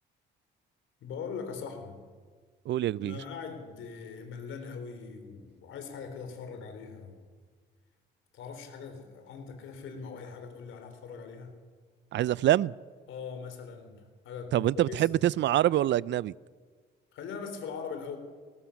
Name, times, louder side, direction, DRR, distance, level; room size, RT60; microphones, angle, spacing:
voice 1, 1.0-2.0 3.0-7.2 8.3-11.5 13.1-15.2 17.1-18.2, left 5 dB, 80° left, 3.9 m, -41 dB
voice 2, 2.7-3.2 12.1-12.7 14.5-16.3, right 13 dB, 65° right, 0.5 m, -25 dB
19.5 x 18.5 x 7.2 m
cardioid pair, 90°, 20 cm